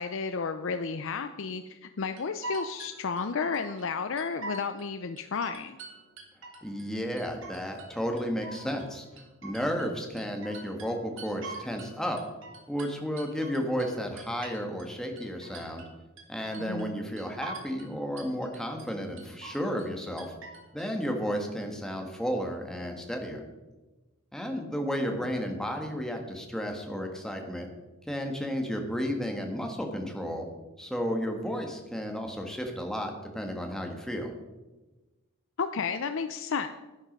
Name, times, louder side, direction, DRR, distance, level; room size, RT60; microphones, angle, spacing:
voice 1, 0.0-5.8 16.7-17.0 35.6-36.7, left 5 dB, 60° left, 9 dB, 0.5 m, -32 dB
sound 1, 2.2-3.9 4.2-4.9 5.2-6.9 7.2-7.9 8.2-11.9 12.2-14.9 15.2-15.9 16.2-16.9 17.2-17.9 18.2-18.9 19.2-19.9 20.2-20.9, right 3 dB, 60° right, 2.3 m, -44 dB
voice 2, 6.6-9.0 9.4-12.2 12.7-15.8 16.3-20.3 20.7-23.4 24.3-27.7 28.1-30.5 30.8-34.3, equal, 5° left, 3 dB, 1.5 m, -33 dB
11.0 x 9.8 x 5.3 m, 1.1 s
head